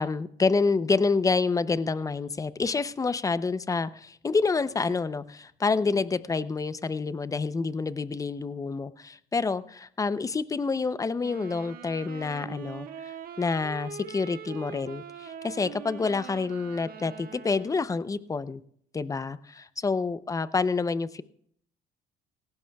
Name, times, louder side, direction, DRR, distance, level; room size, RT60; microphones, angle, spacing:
voice 1, 0.0-18.6 18.9-21.2, left 4 dB, 20° left, 15 dB, 0.6 m, -28 dB
sound 1, 11.1-18.0, right 8 dB, 60° right, 1.3 m, -43 dB
18.5 x 16.0 x 2.3 m, 0.65 s
cardioid pair, 110°, 17 cm